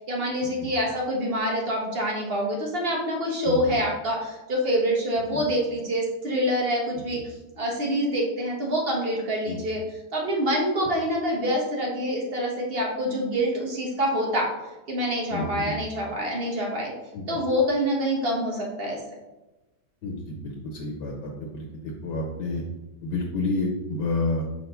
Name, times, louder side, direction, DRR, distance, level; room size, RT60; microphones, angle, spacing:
voice 1, 0.0-7.2 7.6-9.8 10.1-14.5 14.9-16.9 17.3-19.0, equal, 35° right, -1 dB, 1.6 m, -26 dB
voice 2, 15.3-15.8 17.1-17.2 20.0-22.6 23.0-24.4, left 2 dB, 85° left, 0 dB, 1.7 m, -30 dB
5.1 x 4.6 x 5.6 m, 1.1 s
omnidirectional pair, 1.8 m